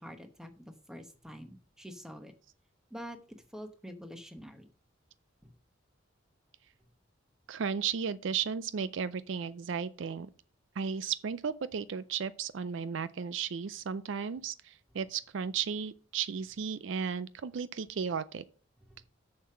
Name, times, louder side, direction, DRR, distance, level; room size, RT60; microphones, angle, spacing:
voice 1, 0.0-2.3 2.9-3.2 3.5-4.6, equal, 5° right, 1.0 m, -46 dB
voice 2, 7.5-10.3 10.8-18.4, right 6 dB, 65° right, 0.4 m, -34 dB
7.0 x 6.7 x 5.7 m
head